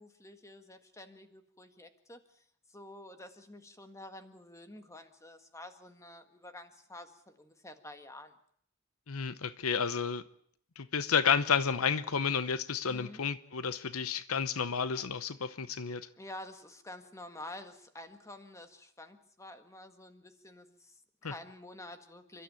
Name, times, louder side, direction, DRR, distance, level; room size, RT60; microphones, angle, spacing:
voice 1, 0.0-2.4 2.7-8.3 12.9-13.2 16.2-22.4, left 1 dB, 15° left, 8 dB, 1.7 m, -49 dB
voice 2, 9.1-10.2 10.8-16.1 21.2-21.3, left 6 dB, 75° left, 15 dB, 0.9 m, -31 dB
29.0 x 12.5 x 8.9 m, 0.67 s
head